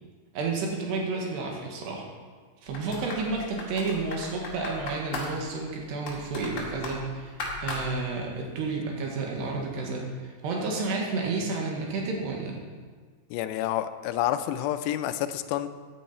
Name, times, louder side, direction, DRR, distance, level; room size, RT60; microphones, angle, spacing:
voice 1, 0.3-2.1 2.6-7.3 7.6-12.6, right 3 dB, 80° right, 0 dB, 3.8 m, -31 dB
sound 1, 2.7-8.6 8.8-8.9, left 2 dB, 50° left, 3.1 m, -38 dB
voice 2, 13.3-15.7, left 12 dB, 90° left, 11 dB, 2.8 m, -29 dB
15.0 x 9.4 x 4.3 m, 1.5 s
omnidirectional pair, 4.8 m